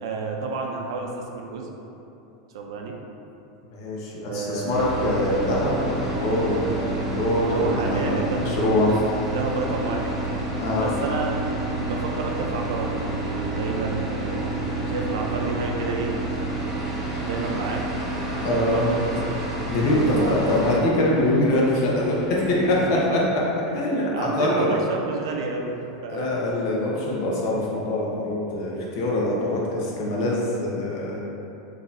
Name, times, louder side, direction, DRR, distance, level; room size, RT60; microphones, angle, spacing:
voice 1, 0.0-1.7 2.5-3.0 4.2-4.9 7.5-9.0 9.3-10.1 10.8-14.5 14.8-16.1 17.2-17.8 18.3-19.5 20.2-20.7 22.8-23.2 23.7-25.8 26.0-26.3, right 3 dB, 80° right, 1 dB, 0.5 m, -30 dB
voice 2, 3.7-8.9 10.6-10.9 18.4-18.9 19.7-23.2 23.7-24.8 26.1-31.2, left 1 dB, 55° left, -4 dB, 0.8 m, -24 dB
sound 1, 4.7-20.8, right 3 dB, 20° right, 1.0 m, -30 dB
Car / Idling, 5.2-23.0, left 2 dB, 5° left, 1.2 m, -35 dB
3.9 x 2.8 x 2.6 m, 2.9 s
supercardioid pair, 160°, 2 cm